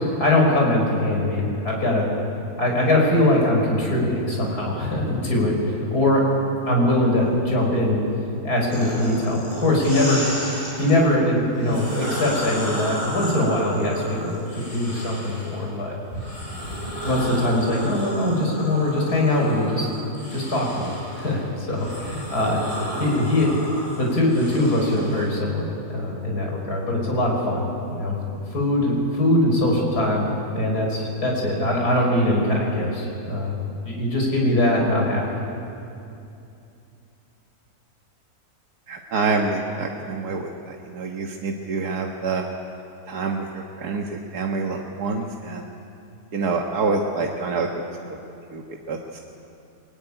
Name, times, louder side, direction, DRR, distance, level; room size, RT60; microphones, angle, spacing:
voice 1, 0.2-2.1 2.6-5.6 5.9-8.0 8.4-10.2 10.8-15.9 17.0-19.9 20.3-22.6 23.0-23.5 24.0-28.2 28.5-30.3 30.5-33.5 33.8-35.4, left 1 dB, 80° left, -1 dB, 5.8 m, -22 dB
sound 1, 8.7-10.9 11.5-15.6 16.1-25.2, equal, 65° left, 8.7 m, -33 dB
voice 2, 38.9-42.4 43.1-45.7 46.3-47.7 48.5-49.0, right 4 dB, 90° right, 1 dB, 2.0 m, -26 dB
23.0 x 22.5 x 10.0 m, 2.7 s
omnidirectional pair, 1.6 m